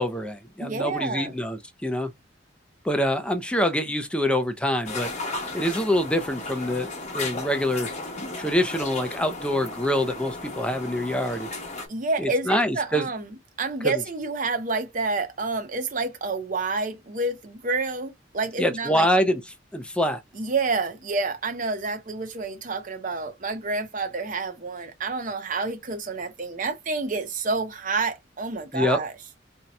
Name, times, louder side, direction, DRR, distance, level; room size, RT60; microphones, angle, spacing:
voice 1, 0.0-2.1 2.8-5.1 5.5-6.9 7.1-7.9 8.4-11.5 12.2-13.1 13.8-13.9 18.6-19.4 19.7-20.2 28.7-29.0, equal, 5° left, 0.5 m, -25 dB
voice 2, 0.6-1.3 11.9-13.3 13.6-19.1 20.3-29.1, right 3 dB, 45° right, 0.7 m, -28 dB
sound 1, 4.8-11.9, left 2 dB, 40° left, 1.0 m, -35 dB
2.7 x 2.2 x 4.1 m
head